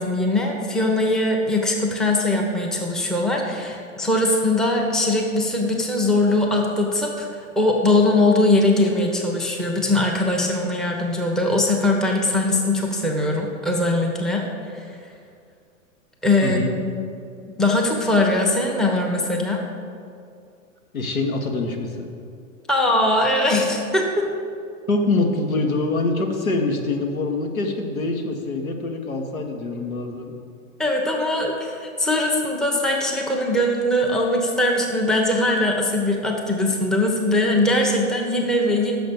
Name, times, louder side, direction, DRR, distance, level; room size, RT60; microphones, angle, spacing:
voice 1, 0.0-7.3 7.6-14.4 14.7-14.9 16.2-17.0 17.6-19.6 22.7-24.3 30.8-39.0, left 1 dB, ahead, -1 dB, 0.7 m, -21 dB
voice 2, 20.9-22.1 24.9-30.3, left 2 dB, 85° left, 3 dB, 1.1 m, -24 dB
6.6 x 5.2 x 6.8 m, 2.4 s
figure-of-eight pair, 105°, 41 cm